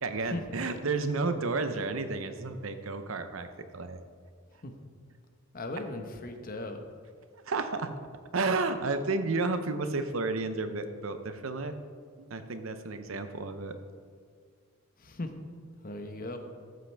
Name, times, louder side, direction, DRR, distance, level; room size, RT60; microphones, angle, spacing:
voice 1, 0.0-3.5 3.7-4.0 7.5-7.9 8.3-11.8 12.2-13.8, right 3 dB, 85° right, 9 dB, 0.8 m, -31 dB
voice 2, 5.5-6.8 15.0-15.3 15.8-16.4, left 2 dB, 45° left, 5 dB, 1.0 m, -37 dB
14.0 x 7.6 x 3.4 m, 2.1 s
head